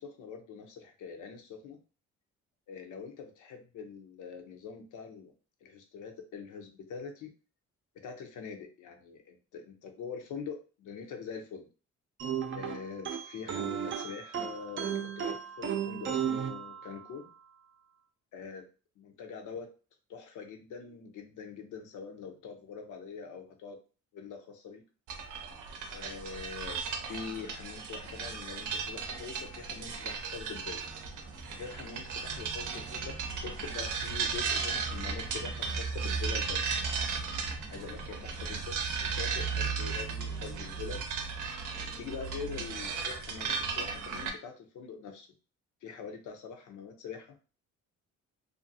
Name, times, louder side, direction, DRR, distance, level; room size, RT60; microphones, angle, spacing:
voice 1, 0.0-1.8 2.7-5.3 5.6-7.3 7.9-11.7 12.5-17.3 18.3-18.6 19.0-19.7 20.1-23.8 24.1-24.8 25.9-30.8 31.5-33.1 33.4-36.7 37.7-41.0 42.0-45.3 45.8-47.4, left 6 dB, 80° left, 4 dB, 0.7 m, -44 dB
sound 1, 12.2-17.3, right 8 dB, 40° right, 0.4 m, -35 dB
sound 2, 25.1-44.3, right 5 dB, 80° right, 0.6 m, -35 dB
2.6 x 2.5 x 2.6 m, 0.35 s
cardioid pair, 90°, 30 cm